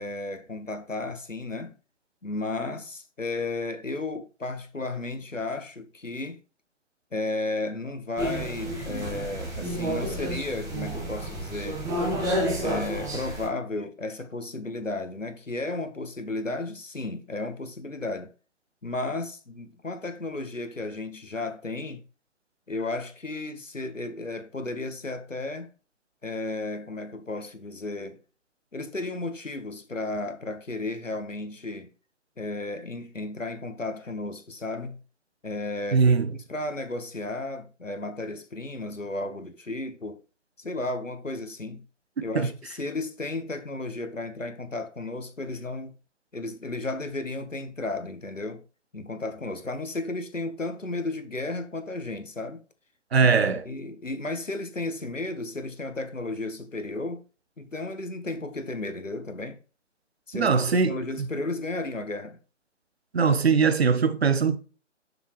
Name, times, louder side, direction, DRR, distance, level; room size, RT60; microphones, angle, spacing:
voice 1, 0.0-1.8 2.2-6.4 7.1-11.8 12.6-18.3 18.8-22.0 22.7-25.7 26.2-28.2 28.7-31.9 32.4-35.0 35.4-36.1 36.5-40.2 40.6-41.9 42.2-45.9 46.3-48.6 48.9-52.6 53.2-53.3 53.6-57.2 57.6-59.6 60.3-62.4, left 2 dB, 85° left, 1.6 m, -33 dB
sound 1, 8.2-13.5, right 1 dB, 10° right, 1.4 m, -30 dB
voice 2, 35.9-36.3 42.3-42.5 53.1-53.6 60.3-61.3 63.1-64.6, right 5 dB, 55° right, 1.2 m, -21 dB
7.1 x 6.7 x 3.2 m
figure-of-eight pair, 135°, 37 cm